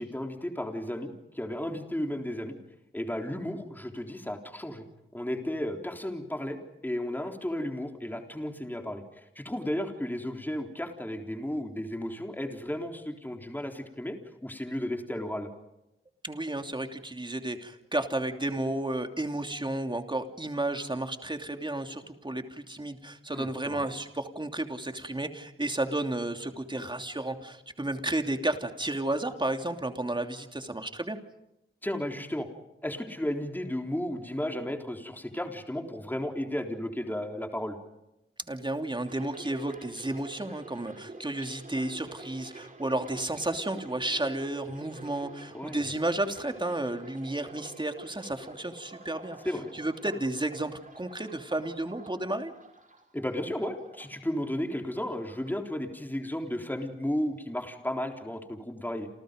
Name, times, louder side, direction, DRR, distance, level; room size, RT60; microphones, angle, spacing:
voice 1, 0.0-2.6 2.9-4.9 5.1-6.6 6.8-15.5 23.3-23.8 26.7-26.8 31.8-32.5 32.8-37.8 45.5-45.8 49.4-49.7 53.1-59.1, left 1 dB, 10° left, 3 dB, 3.7 m, -34 dB
voice 2, 16.2-31.2 38.5-49.4 49.7-52.5, right 1 dB, 20° right, 5 dB, 2.9 m, -32 dB
sound 1, 39.0-55.0 55.3-56.2 56.5-56.8, right 2 dB, 40° right, 5.7 m, -48 dB
30.0 x 28.5 x 5.2 m, 0.87 s
wide cardioid pair, 90°, 21 cm